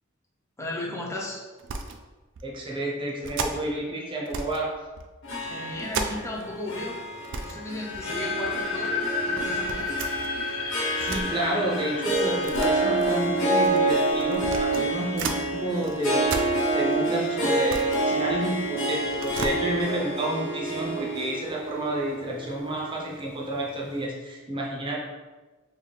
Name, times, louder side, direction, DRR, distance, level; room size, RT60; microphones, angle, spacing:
voice 1, 0.6-1.4 5.4-7.0 7.3-9.0 9.2-9.9, left 1 dB, 15° left, -2 dB, 0.6 m, -35 dB
sound 1, 1.6-2.0 2.3-2.5 3.2-3.8 4.3-4.7 5.0-6.5 6.8-6.9 7.2-7.6 7.9-8.6 9.4-11.3 12.1-15.4 15.8-17.0 17.4-18.7 19.0-19.6, right 4 dB, 65° right, 0.4 m, -35 dB
voice 2, 2.4-4.8 11.0-16.3 16.7-25.0, right 1 dB, 25° right, -2 dB, 0.7 m, -30 dB
Harp, 5.2-23.7, right 2 dB, 65° left, 1.1 m, -28 dB
sound 2, 7.8-14.7, left 4 dB, 85° left, 0.6 m, -33 dB
3.2 x 2.4 x 4.0 m, 1.2 s
head